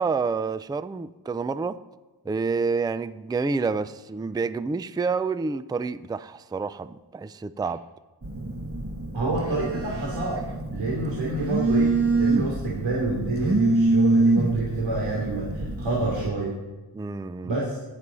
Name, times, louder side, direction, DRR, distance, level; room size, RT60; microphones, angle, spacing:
voice 1, 0.0-1.8 2.3-7.8 16.9-17.5, right 4 dB, 10° right, 14 dB, 0.3 m, -28 dB
Telephone, 8.2-16.3, right 2 dB, 30° right, 1.4 m, -25 dB
voice 2, 9.1-10.4 10.7-11.9 12.2-16.5 17.4-17.8, right 2 dB, 85° right, -4 dB, 3.2 m, -27 dB
16.5 x 11.0 x 4.1 m, 1.2 s
wide cardioid pair, 105°, 43 cm